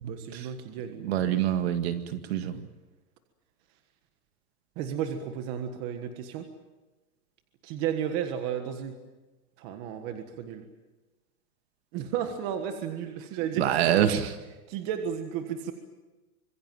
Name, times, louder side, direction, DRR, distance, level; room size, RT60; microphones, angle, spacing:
voice 1, 0.0-1.4 4.8-6.4 7.6-8.9 9.6-10.6 11.9-14.1 14.7-15.7, right 8 dB, 25° right, 6 dB, 1.5 m, -33 dB
voice 2, 1.0-2.6 13.6-14.2, right 11 dB, 45° right, 8 dB, 1.9 m, -26 dB
26.0 x 22.0 x 7.6 m, 1.1 s
supercardioid pair, 175°, 46 cm